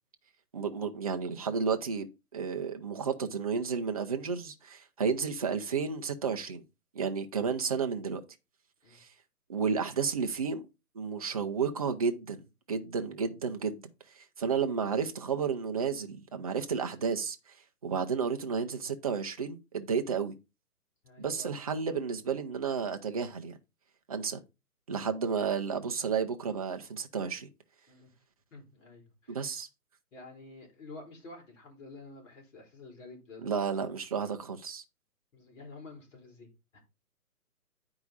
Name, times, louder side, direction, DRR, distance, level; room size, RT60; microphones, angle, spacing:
voice 1, 0.5-2.1 2.3-6.6 6.9-8.2 8.9-9.1 9.5-10.6 10.9-13.8 14.1-17.4 17.8-20.3 21.2-23.6 24.1-24.4 24.9-27.5 29.3-29.7 33.4-34.8, right 6 dB, 25° right, 0.5 m, -32 dB
voice 2, 21.0-21.5 27.9-28.1 28.5-29.5 30.1-34.0 35.3-36.8, left 3 dB, 55° left, 4.4 m, -50 dB
9.2 x 4.8 x 3.9 m
hypercardioid pair, 145°, 46 cm